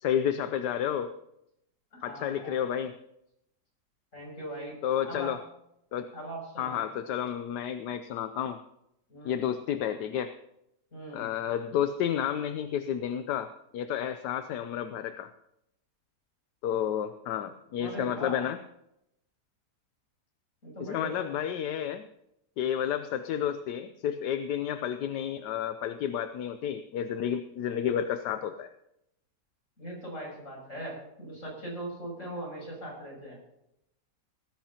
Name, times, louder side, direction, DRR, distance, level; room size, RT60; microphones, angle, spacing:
voice 1, 0.0-1.2 2.0-2.9 4.8-5.4 5.9-6.1 6.6-8.6 9.2-10.3 11.1-15.3 16.6-18.6 20.8-22.0 22.6-28.7, left 9 dB, 80° left, 10 dB, 1.3 m, -31 dB
voice 2, 1.9-2.6 4.1-4.7 5.0-5.3 6.1-6.8 9.1-9.5 10.9-11.3 17.8-18.4 20.6-21.3 29.8-33.4, right 1 dB, 50° left, -2 dB, 7.4 m, -40 dB
18.5 x 15.0 x 2.9 m, 0.81 s
omnidirectional pair, 1.8 m